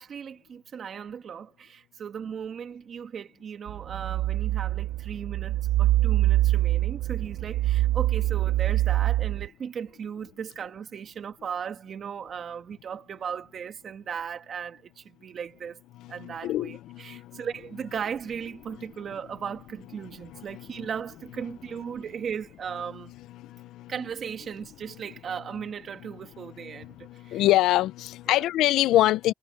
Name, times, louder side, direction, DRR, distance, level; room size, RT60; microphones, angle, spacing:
voice 1, 0.0-15.8 16.1-23.1 23.9-27.4 28.3-28.4, right 7 dB, 55° right, 1.7 m, -37 dB
sound 1, 3.7-9.5, right 15 dB, 85° right, 0.7 m, -25 dB
voice 2, 16.0-17.4 20.3-20.9 23.5-23.9 26.4-26.5 26.7-29.3, left 15 dB, 90° left, 0.6 m, -25 dB
cardioid pair, 90°, 0 cm